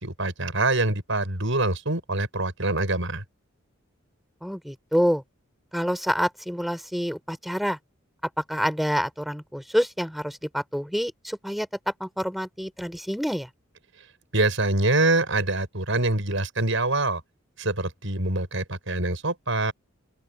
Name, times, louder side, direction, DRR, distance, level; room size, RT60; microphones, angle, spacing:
voice 1, 0.0-3.2 14.3-17.2 17.6-19.7, right 2 dB, 70° right, 6.1 m, -25 dB
voice 2, 4.4-5.2 5.7-7.8 8.5-11.7 12.0-13.5, equal, ahead, 4.9 m, -27 dB
open air
head